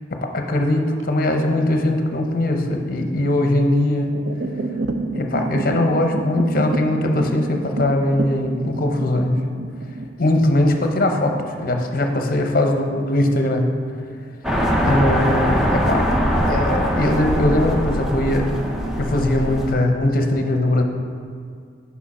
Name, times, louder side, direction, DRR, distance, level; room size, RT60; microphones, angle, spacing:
voice 1, 0.1-4.2 5.1-9.4 10.2-13.7 14.8-16.1 16.5-18.5 18.9-20.8, left 1 dB, 50° left, 4 dB, 0.7 m, -20 dB
sound 1, 0.9-1.9 2.5-2.9 3.7-14.8 15.1-15.6 16.0-16.1 16.5-17.2, right 2 dB, 65° right, 0.4 m, -30 dB
sound 2, 14.4-19.7, equal, 5° right, 0.6 m, -21 dB
8.5 x 5.7 x 4.2 m, 2.2 s
head